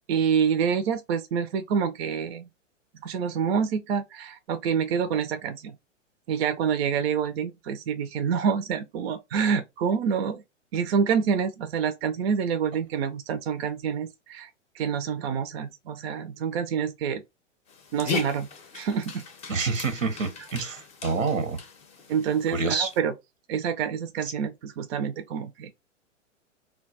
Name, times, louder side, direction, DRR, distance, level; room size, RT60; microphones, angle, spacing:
voice 1, 0.1-2.5 3.0-5.7 6.3-10.4 10.7-14.5 14.7-17.2 17.9-18.5 18.7-19.2 22.1-23.1 23.5-25.7, right 7 dB, 55° right, 0.5 m, -27 dB
Dog, 17.7-23.0, left 5 dB, 15° left, 0.6 m, -38 dB
voice 2, 19.5-21.6 22.5-22.9 24.2-24.3, right 4 dB, 90° right, 0.9 m, -27 dB
2.3 x 2.2 x 3.9 m
hypercardioid pair, 105°, 37 cm